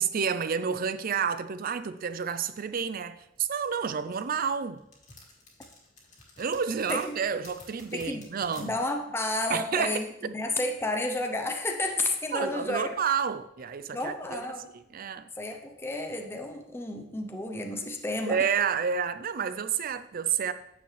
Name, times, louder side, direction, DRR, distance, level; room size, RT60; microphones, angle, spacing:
voice 1, 0.0-4.8 6.4-8.7 9.5-10.3 12.3-14.4 14.7-15.3 18.2-20.5, right 6 dB, 50° right, 0.5 m, -30 dB
sound 1, 3.6-8.6, left 3 dB, 40° left, 2.1 m, -51 dB
voice 2, 7.9-8.3 8.6-10.0 10.3-12.9 13.9-14.7 15.4-18.4, left 2 dB, 15° left, 0.7 m, -31 dB
9.3 x 7.0 x 3.3 m
head